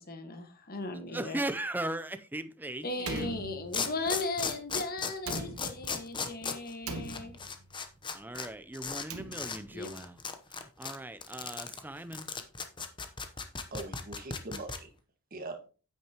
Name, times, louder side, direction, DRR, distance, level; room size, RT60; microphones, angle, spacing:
voice 1, 0.0-1.4 2.8-7.3 9.7-9.9, left 2 dB, 40° left, 1.5 m, -37 dB
voice 2, 1.1-3.3 8.1-10.2 10.5-12.3, right 1 dB, 10° right, 0.5 m, -38 dB
Slam, 3.0-4.1 5.2-6.1 6.8-7.7 8.8-9.8, right 2 dB, 75° right, 1.3 m, -41 dB
sound 1, 3.2-3.3 3.7-8.5 8.7-9.0 9.3-9.6 9.8-14.8, left 5 dB, 20° left, 0.9 m, -36 dB
voice 3, 13.2-14.9 15.3-15.6, right 2 dB, 40° right, 1.7 m, -42 dB
9.1 x 8.7 x 2.9 m
head